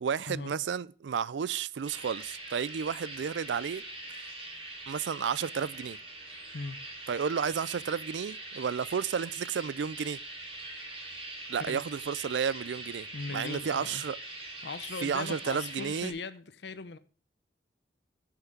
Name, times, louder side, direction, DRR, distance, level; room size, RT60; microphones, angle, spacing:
voice 1, 0.0-3.8 4.9-6.0 7.1-10.2 11.5-14.2 15.0-16.1, right 7 dB, 85° right, 0.4 m, -32 dB
sound 1, 1.8-16.1, right 2 dB, 30° right, 3.6 m, -43 dB
voice 2, 13.1-14.0 14.6-17.0, left 4 dB, 70° left, 0.7 m, -39 dB
9.5 x 5.8 x 6.6 m
head